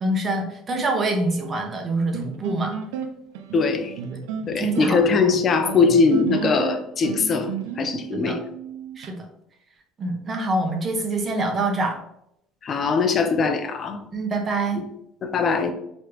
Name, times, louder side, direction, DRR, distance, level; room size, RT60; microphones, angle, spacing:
voice 1, 0.0-2.7 4.1-4.2 4.6-5.4 8.1-8.4 9.0-9.2 10.0-12.0 14.1-14.8, right 2 dB, 35° right, 3 dB, 1.1 m, -25 dB
sound 1, 2.1-9.1, right 7 dB, 85° right, 0.4 m, -32 dB
voice 2, 3.5-3.9 4.5-8.4 12.6-14.0 14.8-14.9 15.2-15.7, left 4 dB, 45° left, 7 dB, 0.7 m, -21 dB
4.7 x 3.3 x 3.0 m, 0.77 s
supercardioid pair, 85°, 0 cm